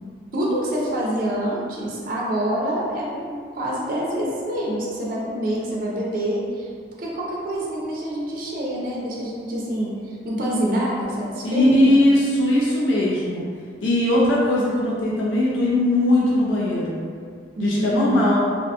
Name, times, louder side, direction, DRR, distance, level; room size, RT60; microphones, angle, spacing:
voice 1, 0.3-6.7 7.0-12.0 17.6-18.3, right 1 dB, 45° right, -5 dB, 0.4 m, -26 dB
voice 2, 11.4-13.4 13.8-17.0 17.6-18.4, left 1 dB, 80° left, -5 dB, 0.4 m, -19 dB
2.4 x 2.1 x 2.7 m, 2.1 s
head